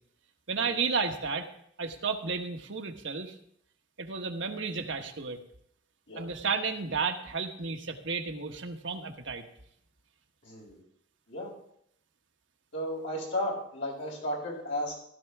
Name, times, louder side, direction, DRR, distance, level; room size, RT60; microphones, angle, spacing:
voice 1, 0.5-1.5 1.8-3.3 4.0-5.4 6.2-9.4, right 5 dB, 75° right, 4 dB, 1.3 m, -32 dB
voice 2, 10.4-10.8 11.3-11.5 12.7-14.9, left 1 dB, 80° left, -4 dB, 6.5 m, -34 dB
16.0 x 13.0 x 3.6 m, 0.70 s
head